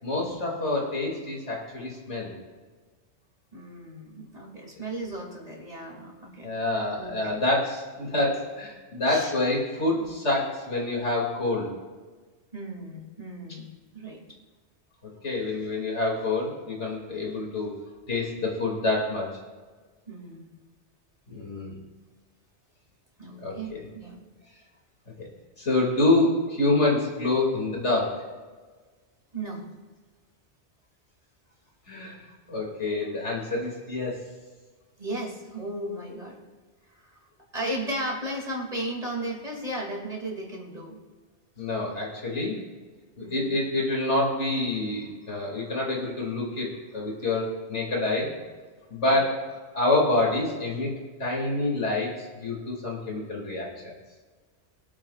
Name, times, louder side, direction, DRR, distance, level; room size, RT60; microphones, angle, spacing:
voice 1, 0.0-2.3 6.4-11.7 15.2-17.7 18.1-19.3 21.3-21.7 23.4-23.8 25.2-25.3 25.6-28.2 31.9-32.2 32.5-34.2 41.6-42.6 43.2-46.7 46.9-48.3 48.9-50.9 51.2-53.7, left 2 dB, 90° left, -2 dB, 3.0 m, -27 dB
voice 2, 3.5-6.5 6.9-7.4 9.1-9.3 10.0-10.1 12.5-13.7 13.9-14.2 20.1-20.5 23.2-24.2 29.3-29.6 35.0-36.4 36.9-37.2 37.5-41.0 43.2-43.6 49.1-49.2, right 1 dB, 35° right, -1 dB, 2.7 m, -35 dB
24.5 x 8.9 x 2.5 m, 1.4 s
omnidirectional pair, 1.2 m